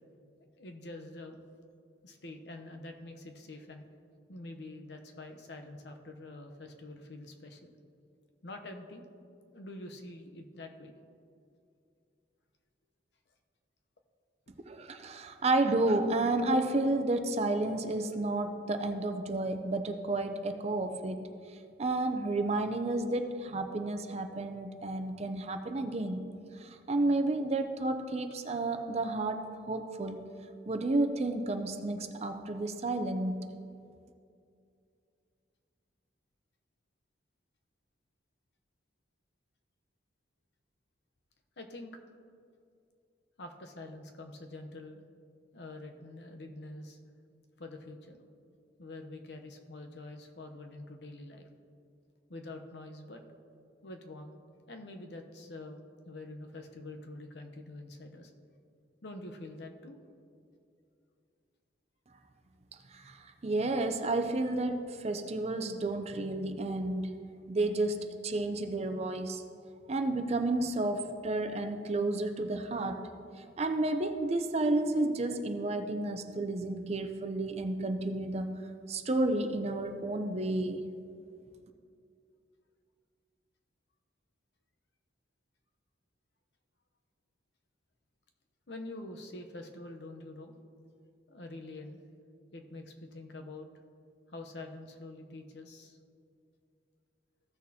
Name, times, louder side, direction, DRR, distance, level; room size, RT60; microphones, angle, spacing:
voice 1, 0.6-1.4 2.0-3.9 4.3-7.7 8.4-9.1 9.5-10.9 41.6-41.9 43.4-45.0 45.5-47.0 47.6-48.2 48.8-51.4 52.3-53.2 53.8-54.3 54.7-55.8 56.0-58.3 59.0-60.0 88.7-90.5 91.3-92.0 92.5-93.7 94.3-96.0, left 2 dB, 65° left, 4 dB, 0.8 m, -46 dB
voice 2, 14.7-21.3 21.8-26.3 26.5-30.3 30.7-33.4 62.9-67.1 67.5-69.4 69.9-73.1 73.6-78.6 78.9-80.9, right 2 dB, 35° right, 7 dB, 0.5 m, -31 dB
15.5 x 6.3 x 2.8 m, 2.4 s
head